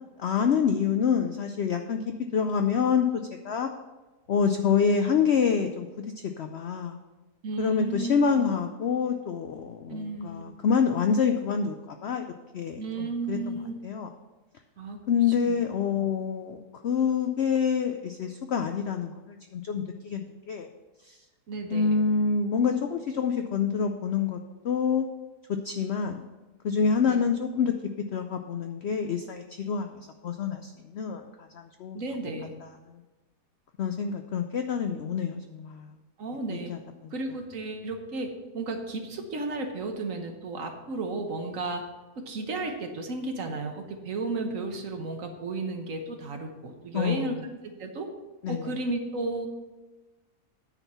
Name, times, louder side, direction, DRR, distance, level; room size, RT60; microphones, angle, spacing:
voice 1, 0.2-2.0 2.3-3.1 3.4-3.7 4.3-7.0 7.6-12.2 12.5-13.6 13.8-14.1 15.1-20.7 21.0-21.2 21.7-24.4 24.6-25.1 25.6-26.2 26.6-27.7 28.1-32.0 32.6-32.7 33.8-35.9 36.5-37.1 46.9-47.3 48.4-48.7, left 6 dB, 85° left, 6 dB, 0.5 m, -27 dB
voice 2, 7.4-8.1 9.9-10.4 12.8-13.8 14.8-15.0 15.5-15.6 15.9-16.1 21.5-22.0 27.0-27.2 31.9-32.5 36.2-36.7 37.1-41.8 42.2-47.4 47.8-48.1 48.5-49.5, right 3 dB, 55° right, 4 dB, 1.3 m, -33 dB
9.7 x 4.5 x 6.7 m, 1.2 s
omnidirectional pair, 1.8 m